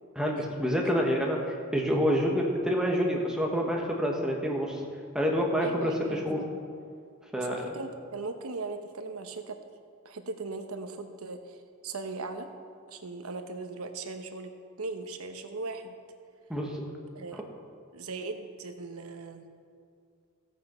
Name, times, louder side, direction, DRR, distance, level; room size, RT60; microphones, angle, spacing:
voice 1, 0.1-4.8 5.1-6.4 7.3-7.7 16.5-16.8 17.3-17.4, equal, 5° right, -1 dB, 1.3 m, -28 dB
voice 2, 5.6-6.6 7.4-9.6 10.0-11.6 11.8-12.5 12.9-14.5 14.8-15.9 17.1-17.4 17.9-19.5, right 3 dB, 85° right, 7 dB, 1.0 m, -38 dB
15.5 x 8.4 x 4.4 m, 2.2 s
head